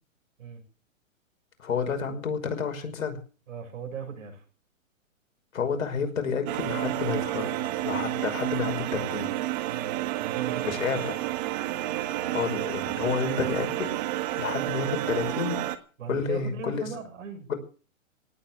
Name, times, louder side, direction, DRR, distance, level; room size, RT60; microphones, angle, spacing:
voice 1, 1.6-3.2 5.5-7.6 7.8-9.4 10.6-11.2 12.3-15.6 16.1-16.9 17.5-17.6, left 6 dB, 75° left, 6 dB, 5.8 m, -30 dB
voice 2, 3.5-4.4 9.6-10.8 16.0-17.5, right 6 dB, 70° right, 5 dB, 7.7 m, -38 dB
sound 1, 6.5-15.8, right 15 dB, 35° right, 1.7 m, -30 dB
18.5 x 8.7 x 8.4 m, 0.39 s
hypercardioid pair, 145°, 40 cm